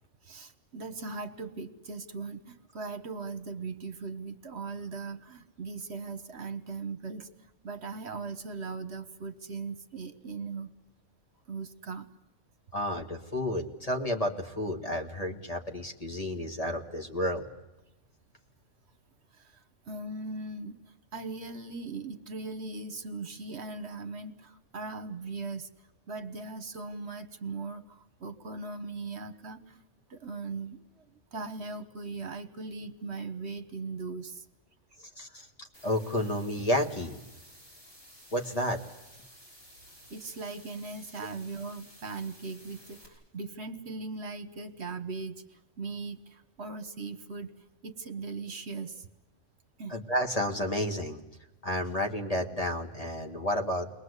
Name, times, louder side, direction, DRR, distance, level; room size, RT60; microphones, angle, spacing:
voice 1, 0.2-7.3 7.6-10.7 11.5-12.1 19.3-25.7 26.1-29.8 30.1-31.0 31.3-34.4 40.1-47.5 47.8-49.1 49.8-50.0, right 4 dB, 60° right, 9 dB, 1.5 m, -39 dB
voice 2, 12.7-17.5 35.2-35.5 35.8-37.2 38.3-38.8 49.9-51.2 51.6-53.9, left 1 dB, 30° left, 3 dB, 2.0 m, -31 dB
sound 1, 35.7-43.0, equal, 55° left, 7.9 m, -54 dB
29.0 x 21.5 x 8.2 m, 1.0 s
omnidirectional pair, 1.3 m